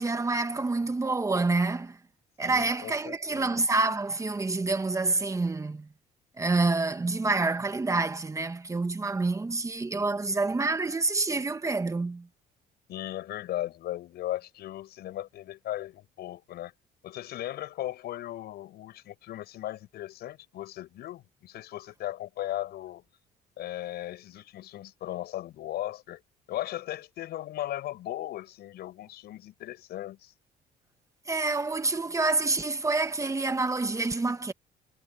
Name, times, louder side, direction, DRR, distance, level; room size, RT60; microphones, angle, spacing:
voice 1, 0.0-2.0 2.4-5.9 6.4-12.3 31.3-34.5, right 3 dB, 20° right, 1.5 m, -27 dB
voice 2, 2.4-3.6 12.9-16.7 17.0-23.0 23.6-26.2 26.5-30.3, left 14 dB, 70° left, 7.3 m, -37 dB
cardioid pair, 110°, 17 cm